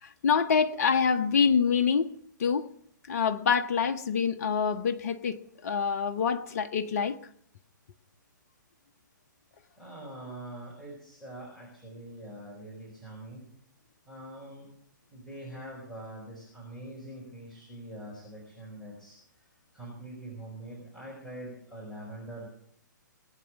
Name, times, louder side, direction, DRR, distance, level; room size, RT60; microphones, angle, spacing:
voice 1, 0.0-2.1 2.4-2.7 3.1-7.2, left 6 dB, 50° left, 8 dB, 0.9 m, -26 dB
voice 2, 9.8-13.4 14.1-14.7 15.1-19.2 19.7-22.5, right 1 dB, 5° left, -6 dB, 4.9 m, -44 dB
20.5 x 9.0 x 6.2 m, 0.68 s
figure-of-eight pair, 120°, 11 cm